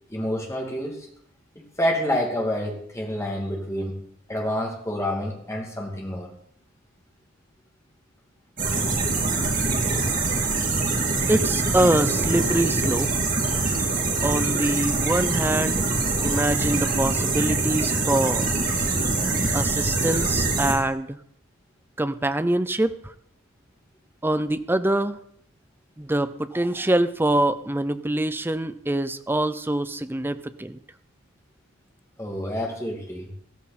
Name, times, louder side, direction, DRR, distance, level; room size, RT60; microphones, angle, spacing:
voice 1, 0.1-1.1 1.6-4.0 4.3-6.3 32.2-33.3, equal, 15° left, 0 dB, 2.5 m, -28 dB
sound 1, 8.6-20.7, right 3 dB, 40° right, 2.8 m, -24 dB
voice 2, 11.3-13.1 14.2-15.8 16.2-18.5 19.5-21.2 22.0-23.1 24.2-25.2 26.0-30.8, right 1 dB, 10° right, 12 dB, 0.5 m, -24 dB
14.0 x 14.0 x 4.2 m, 0.66 s
head